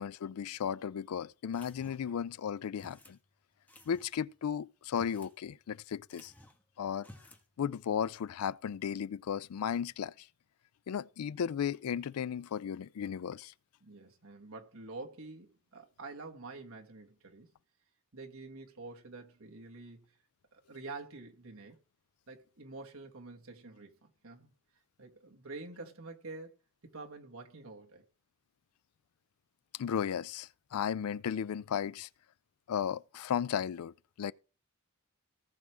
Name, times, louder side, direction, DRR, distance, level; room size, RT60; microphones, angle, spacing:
voice 1, 0.0-3.2 3.9-6.3 6.8-7.1 7.6-10.3 10.9-13.5 29.8-32.1 32.7-34.3, left 8 dB, 85° left, 0.4 m, -35 dB
sound 1, 1.5-2.2 2.8-3.2 3.7-4.1 4.8-5.4 5.6-5.7 6.1-6.6 7.0-7.5, left 1 dB, 5° left, 1.3 m, -55 dB
voice 2, 13.8-17.5 18.1-20.1 20.5-21.8 22.3-24.5 25.0-26.6 26.8-28.0, right 3 dB, 70° right, 1.7 m, -47 dB
18.5 x 6.2 x 3.3 m
head